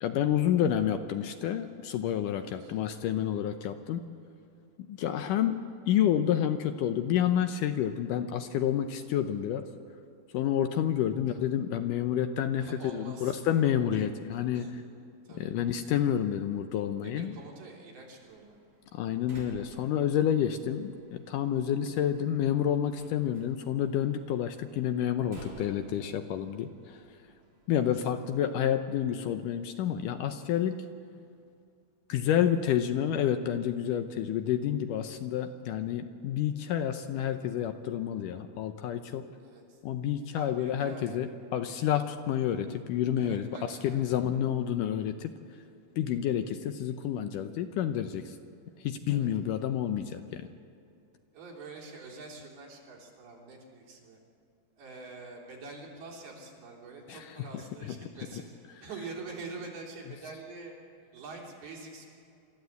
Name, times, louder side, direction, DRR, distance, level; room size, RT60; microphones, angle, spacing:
voice 1, 0.0-4.1 4.9-9.7 10.3-14.7 15.3-17.4 18.9-27.0 27.7-30.8 32.1-39.3 39.8-45.3 46.0-48.4 48.8-50.5 57.1-57.2 57.9-58.0, left 10 dB, 75° left, 8 dB, 2.1 m, -29 dB
voice 2, 2.3-2.8 11.0-11.1 12.6-13.4 14.5-14.8 15.2-15.5 17.0-18.6 27.7-27.9 39.4-39.8 40.3-41.2 43.2-44.4 49.1-49.3 51.3-54.2 54.8-58.5 58.8-60.8 61.1-62.1, right 3 dB, 90° right, -2 dB, 5.2 m, -45 dB
Slam, 18.2-27.7, right 1 dB, 60° right, 7.3 m, -55 dB
27.0 x 13.5 x 8.2 m, 2.5 s
omnidirectional pair, 4.3 m